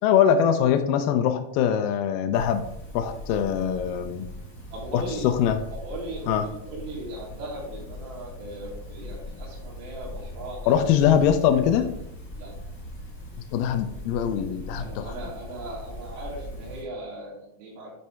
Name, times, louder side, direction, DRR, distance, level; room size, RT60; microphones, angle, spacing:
voice 1, 0.0-2.6 2.9-4.3 4.9-5.6 6.3-6.4 10.7-11.9 13.5-15.1, left 9 dB, 80° left, 8 dB, 2.0 m, -22 dB
sound 1, 2.3-16.8, left 1 dB, 35° left, 2.0 m, -40 dB
voice 2, 4.7-5.3 5.7-10.8 11.0-11.9 12.4-12.6 14.8-17.9, right 1 dB, 75° right, -6 dB, 3.5 m, -38 dB
9.6 x 3.3 x 4.6 m, 0.81 s
omnidirectional pair, 4.5 m